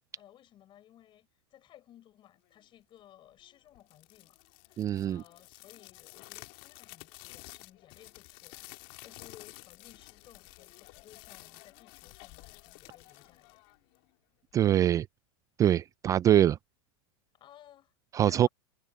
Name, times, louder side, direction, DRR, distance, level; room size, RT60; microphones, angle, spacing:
voice 1, 0.1-13.6 17.3-18.5, left 12 dB, 35° left, 7.1 m, -58 dB
sound 1, 3.8-14.1, left 26 dB, 55° left, 2.1 m, -51 dB
voice 2, 4.8-5.2 14.5-15.1 15.6-16.6 18.1-18.5, right 11 dB, 25° right, 0.3 m, -23 dB
supercardioid pair, 125°, 14 cm